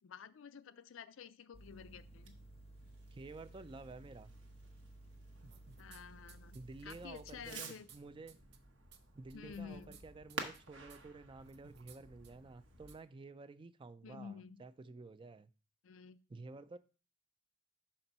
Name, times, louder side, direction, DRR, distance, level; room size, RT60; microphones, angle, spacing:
voice 1, 0.0-2.4 5.8-7.9 9.3-10.0 14.0-14.6 15.8-16.2, left 6 dB, 75° left, 0.4 m, -51 dB
sound 1, 1.5-7.5, right 1 dB, 30° left, 0.6 m, -57 dB
Fireworks, 1.6-13.0, right 4 dB, 75° right, 1.1 m, -53 dB
voice 2, 3.1-4.3 6.5-8.4 9.1-15.5 16.3-16.8, right 3 dB, 25° right, 0.3 m, -51 dB
sound 2, 5.4-6.0 6.3-8.0 8.3-8.6 8.9-9.0 9.3-10.0 10.3-10.6 10.9-11.0 11.4-12.0 12.2-12.3 12.9-13.0, right 6 dB, 55° right, 0.7 m, -59 dB
6.0 x 4.3 x 5.3 m
head